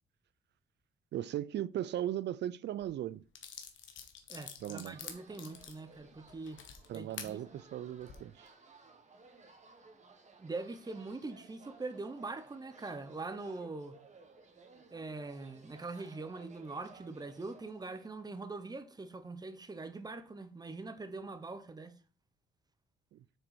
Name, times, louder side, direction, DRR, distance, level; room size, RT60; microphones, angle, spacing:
voice 1, 1.1-3.2 4.6-5.0 6.9-8.5 23.1-23.2, right 12 dB, 60° right, 0.4 m, -37 dB
sound 1, 2.8-2.9 3.3-7.3 7.9-8.2, left 8 dB, 75° left, 1.4 m, -47 dB
voice 2, 4.3-6.6 6.9-7.6 10.4-14.0 14.9-21.9, right 3 dB, 20° right, 1.1 m, -43 dB
sound 2, 4.6-18.2, right 3 dB, 35° right, 1.6 m, -58 dB
6.7 x 4.4 x 6.2 m
cardioid pair, 90°, 20 cm